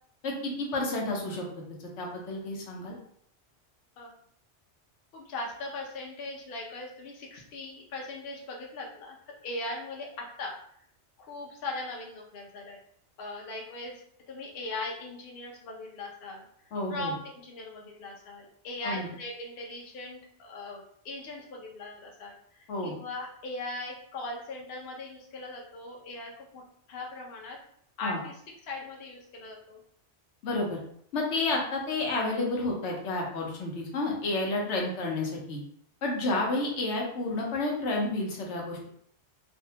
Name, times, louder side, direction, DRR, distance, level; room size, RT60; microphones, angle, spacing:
voice 1, 0.2-1.4 2.0-2.9 16.7-17.1 18.8-19.1 22.7-22.9 28.0-28.2 30.4-30.8 31.1-35.6 36.0-38.9, left 2 dB, 90° left, -1 dB, 1.0 m, -30 dB
voice 2, 5.1-10.6 11.2-12.8 13.2-14.0 14.3-16.5 16.9-26.6 26.9-27.6 28.0-29.8 36.6-36.7, left 2 dB, 60° left, -1 dB, 0.8 m, -39 dB
2.6 x 2.1 x 2.8 m, 0.66 s
omnidirectional pair, 1.2 m